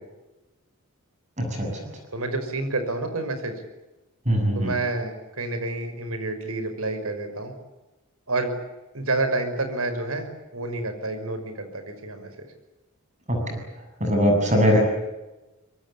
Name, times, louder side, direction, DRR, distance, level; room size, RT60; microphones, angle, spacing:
voice 1, 1.4-1.8 4.3-4.7 13.3-13.6 14.0-14.8, equal, 35° right, 3 dB, 7.1 m, -21 dB
voice 2, 2.1-3.6 4.5-7.5 8.3-8.5 8.9-12.3 14.6-14.8, right 2 dB, 85° right, 8 dB, 5.7 m, -29 dB
25.0 x 23.5 x 8.7 m, 1.1 s
head